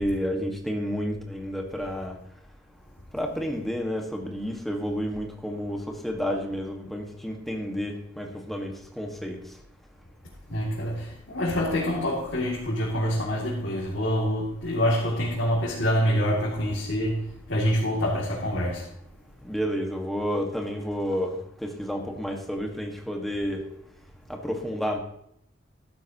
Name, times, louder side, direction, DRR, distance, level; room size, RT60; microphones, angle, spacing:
voice 1, 0.0-2.2 3.1-9.4 19.4-23.6 24.3-25.0, equal, ahead, 1.6 m, -30 dB
voice 2, 10.5-18.9, equal, 90° left, 2.7 m, -26 dB
14.5 x 12.5 x 3.0 m
head